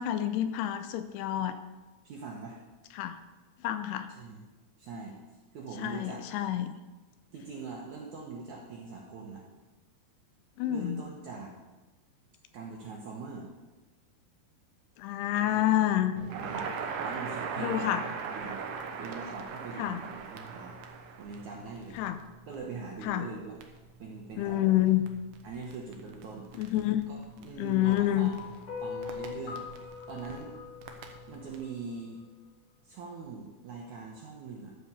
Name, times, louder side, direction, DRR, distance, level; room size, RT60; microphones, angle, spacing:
voice 1, 0.0-1.6 3.0-3.2 3.6-4.1 5.8-6.7 10.6-11.0 15.0-16.1 17.6-18.0 19.8-20.0 22.0-22.2 23.0-23.3 24.4-25.0 26.6-27.0 27.6-28.3, left 13 dB, 85° left, 10 dB, 2.6 m, -28 dB
voice 2, 2.0-2.6 4.1-4.5 4.8-5.1 5.5-6.2 7.3-9.4 10.7-11.6 12.5-13.5 15.4-15.8 16.4-18.6 19.0-20.8 21.2-22.0 22.5-23.5 24.0-24.9 25.4-26.5 27.1-28.5 28.8-29.6 30.1-30.5 31.3-32.3 32.8-34.8, right 4 dB, 70° right, -2 dB, 1.9 m, -42 dB
Crackle, 16.2-31.6, right 5 dB, 85° right, 1.7 m, -41 dB
sound 1, 27.8-32.2, left 6 dB, 55° left, 1.5 m, -42 dB
12.5 x 4.9 x 6.9 m, 1.2 s
omnidirectional pair, 4.8 m